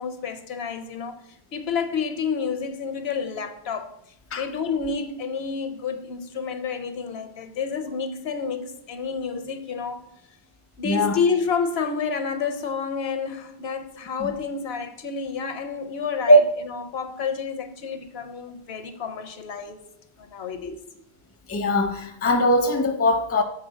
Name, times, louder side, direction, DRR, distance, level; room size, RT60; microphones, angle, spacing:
voice 1, 0.0-4.0 4.3-10.0 10.8-19.8 20.2-20.8, left 5 dB, 70° left, 0.9 m, -29 dB
voice 2, 10.8-11.2 14.2-14.3 16.3-16.4 21.5-23.4, equal, 15° left, 0.5 m, -19 dB
7.8 x 4.3 x 5.0 m
omnidirectional pair, 1.1 m